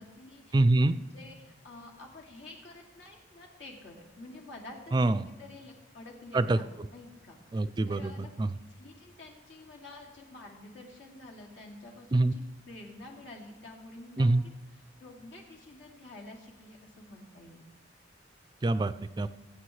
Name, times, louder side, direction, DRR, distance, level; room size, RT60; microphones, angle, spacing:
voice 1, 0.0-0.6 0.9-8.3 8.7-14.3 14.7-17.6, left 2 dB, 75° left, -1 dB, 2.4 m, -49 dB
voice 2, 0.5-1.0 4.9-5.3 6.3-6.6 7.5-8.5 12.1-12.3 14.2-14.4 18.6-19.3, right 2 dB, 25° right, 13 dB, 0.3 m, -25 dB
23.0 x 8.5 x 3.2 m, 1.2 s
head